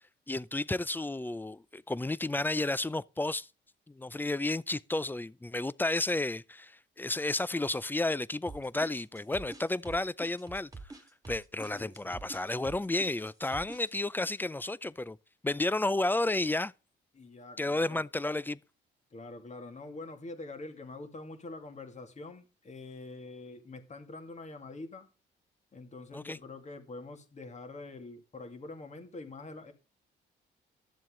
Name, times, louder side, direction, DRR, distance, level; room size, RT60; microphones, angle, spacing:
voice 1, 0.3-3.5 3.9-10.7 11.3-15.2 15.4-16.7 17.6-18.6 26.1-26.4, left 2 dB, 10° left, 0.4 m, -32 dB
sound 1, 8.5-13.9, right 3 dB, 15° right, 2.2 m, -46 dB
voice 2, 11.7-12.2 17.1-18.1 19.1-25.1 25.7-29.7, left 2 dB, 35° left, 2.4 m, -45 dB
12.0 x 7.5 x 3.8 m
cardioid pair, 90°, 20 cm